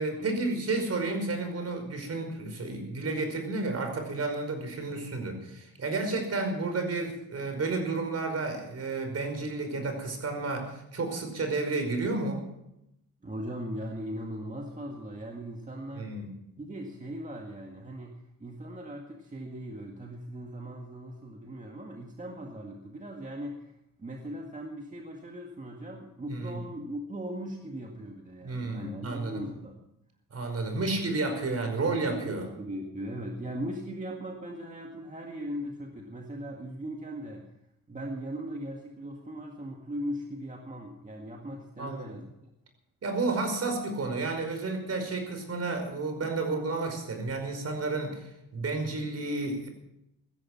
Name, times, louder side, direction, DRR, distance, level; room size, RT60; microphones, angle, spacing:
voice 1, 0.0-12.4 16.0-16.3 26.3-26.6 28.4-29.4 30.3-32.5 41.8-42.2 43.0-49.7, right 3 dB, 45° right, 5 dB, 5.3 m, -31 dB
voice 2, 13.2-16.1 16.6-23.7 24.0-29.8 32.1-37.5 37.9-42.3, equal, 20° right, 1 dB, 1.9 m, -39 dB
17.0 x 13.5 x 6.0 m, 0.83 s
cardioid pair, 115°, 34 cm